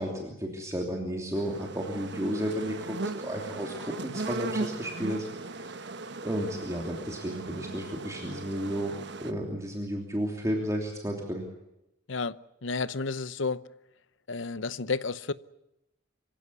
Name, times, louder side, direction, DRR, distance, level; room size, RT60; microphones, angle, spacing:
voice 1, 0.0-5.7 6.2-8.9 9.2-11.4, equal, 15° right, 3.0 m, -33 dB
sound 1, 1.3-9.3, right 3 dB, 55° right, 1.3 m, -38 dB
voice 2, 12.6-13.6 14.3-15.3, left 4 dB, 65° left, 0.8 m, -31 dB
25.5 x 16.0 x 9.7 m
head